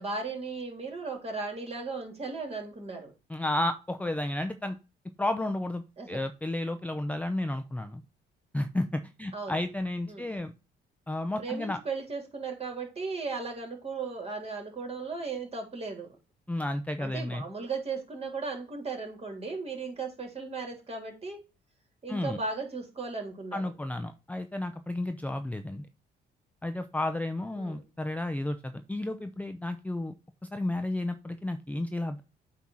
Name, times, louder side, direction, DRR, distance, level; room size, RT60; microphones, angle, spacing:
voice 1, 0.0-3.1 6.0-6.2 9.3-9.6 10.1-10.3 11.4-16.2 17.0-21.4 22.0-23.6 27.6-27.8, right 4 dB, 30° right, 3 dB, 2.7 m, -36 dB
voice 2, 3.3-4.8 5.2-8.0 8.5-10.5 11.1-11.8 16.5-17.4 22.1-22.4 23.5-25.9 26.6-30.1 30.5-32.2, left 1 dB, 5° left, 8 dB, 0.5 m, -32 dB
8.2 x 2.8 x 6.1 m, 0.30 s
cardioid pair, 90°, 20 cm